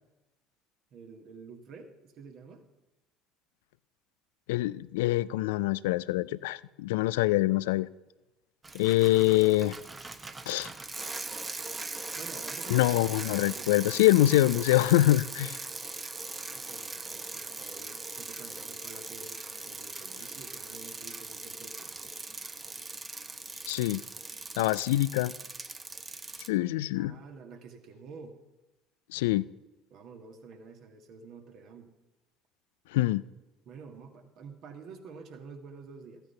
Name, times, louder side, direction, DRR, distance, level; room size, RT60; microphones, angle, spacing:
voice 1, 0.9-2.6 12.1-13.8 16.5-22.2 24.6-24.8 26.5-28.4 29.9-31.9 33.7-36.2, right 4 dB, 50° right, 4 dB, 1.8 m, -49 dB
voice 2, 4.5-7.9 8.7-9.8 10.5-10.7 12.7-15.6 23.7-24.0 24.6-25.3 26.5-27.1 29.1-29.5 32.9-33.2, left 16 dB, 70° left, 19 dB, 0.3 m, -25 dB
Bicycle, 8.6-26.5, right 3 dB, 20° right, 0.8 m, -40 dB
15.0 x 9.0 x 5.7 m, 1.1 s
figure-of-eight pair, 60°, 0 cm